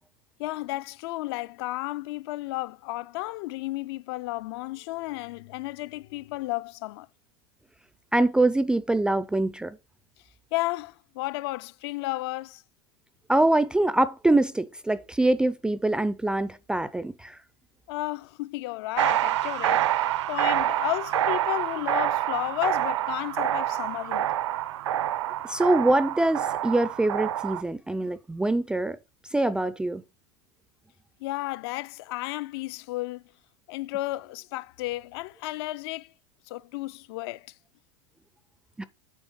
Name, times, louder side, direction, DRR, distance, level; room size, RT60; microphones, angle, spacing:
voice 1, 0.4-7.1 10.5-12.6 17.9-24.3 31.2-33.2 33.7-36.1 36.5-37.5, left 19 dB, 60° left, 0.4 m, -33 dB
voice 2, 8.1-9.8 13.3-17.4 25.4-29.0 29.3-30.0 38.8-38.9, right 2 dB, 5° right, 0.4 m, -24 dB
sound 1, 19.0-27.6, right 12 dB, 80° right, 0.7 m, -27 dB
9.1 x 3.4 x 5.4 m
supercardioid pair, 130°, 15 cm